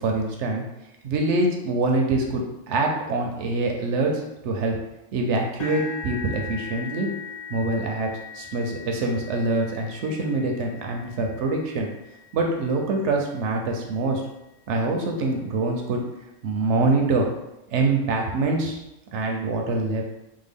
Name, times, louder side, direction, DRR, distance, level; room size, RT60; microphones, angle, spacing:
voice 1, 0.0-0.7 1.0-4.8 5.1-7.1 7.5-8.1 8.3-11.9 12.3-14.2 14.7-16.0 16.4-17.3 17.7-18.8 19.1-20.0, right 2 dB, 65° right, 1 dB, 0.8 m, -24 dB
sound 1, 5.6-13.6 14.3-14.5 14.9-15.0 16.4-16.5, left 5 dB, 85° left, 0.3 m, -40 dB
3.6 x 2.1 x 3.4 m, 0.92 s
omnidirectional pair, 1.5 m